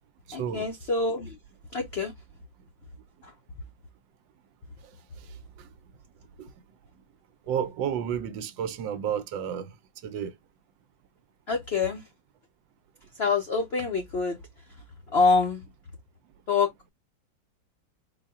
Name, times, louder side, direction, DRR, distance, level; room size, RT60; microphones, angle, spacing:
voice 1, 0.3-1.4 1.7-2.1 3.2-3.3 11.5-12.1 13.1-14.4 15.1-15.6 16.5-16.7, left 4 dB, 70° left, 0.5 m, -26 dB
voice 2, 7.5-9.7 10.0-10.3, right 8 dB, 80° right, 1.3 m, -31 dB
4.3 x 2.1 x 3.5 m
omnidirectional pair, 2.1 m